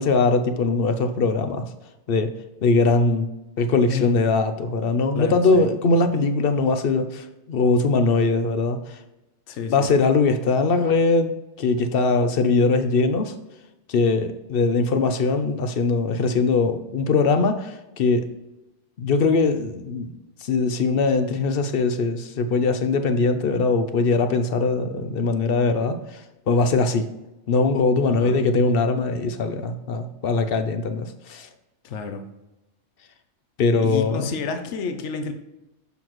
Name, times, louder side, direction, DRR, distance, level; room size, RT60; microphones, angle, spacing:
voice 1, 0.0-1.7 2.1-2.3 2.6-3.3 3.6-9.0 9.7-11.3 11.6-13.3 13.9-18.2 19.0-20.1 20.4-26.2 26.5-27.1 27.5-31.5 33.6-34.3, left 3 dB, 60° left, 9 dB, 0.8 m, -21 dB
voice 2, 5.1-5.7 9.5-9.9 28.1-28.4 31.8-32.2 33.8-35.3, left 6 dB, 80° left, 7 dB, 1.0 m, -30 dB
6.9 x 5.8 x 3.0 m, 0.97 s
omnidirectional pair, 1.2 m